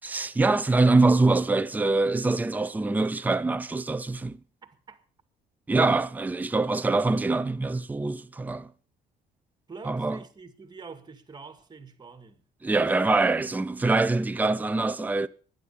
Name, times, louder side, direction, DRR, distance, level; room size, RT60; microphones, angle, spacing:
voice 1, 0.0-4.4 5.7-8.7 9.8-10.2 12.6-15.3, right 3 dB, 10° right, 0.6 m, -24 dB
voice 2, 4.6-5.0 9.7-13.1, right 4 dB, 25° right, 2.0 m, -46 dB
12.5 x 10.5 x 7.1 m
cardioid pair, 110°, 17 cm